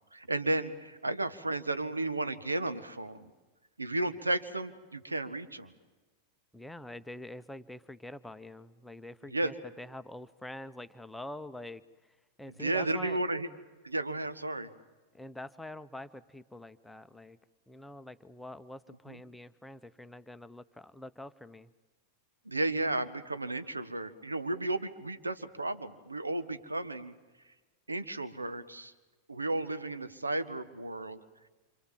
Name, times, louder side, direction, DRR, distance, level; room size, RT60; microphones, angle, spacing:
voice 1, 0.1-3.3 3.8-5.7 9.3-9.5 12.6-13.5 13.8-14.7 19.1-19.2 22.4-27.1 27.9-28.9 29.3-31.2, right 2 dB, 80° right, 11 dB, 1.3 m, -33 dB
voice 2, 6.5-11.8 12.4-13.2 15.1-17.4 17.7-21.7, left 1 dB, 5° left, 11 dB, 0.9 m, -45 dB
27.5 x 26.5 x 7.5 m, 1.2 s
figure-of-eight pair, 90°, 0 cm